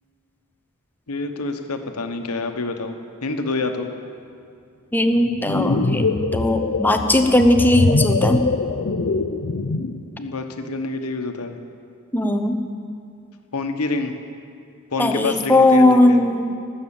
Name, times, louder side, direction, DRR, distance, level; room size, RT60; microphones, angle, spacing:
voice 1, 1.1-2.9 3.2-3.9 10.2-11.6 13.5-14.2 14.9-16.3, left 3 dB, 85° left, 6 dB, 1.1 m, -27 dB
voice 2, 4.9-8.4 12.1-12.6 15.0-16.4, left 1 dB, 10° left, 6 dB, 0.7 m, -17 dB
sound 1, 5.2-10.0, left 3 dB, 55° left, 0.6 m, -23 dB
19.0 x 7.7 x 7.2 m, 2.4 s
head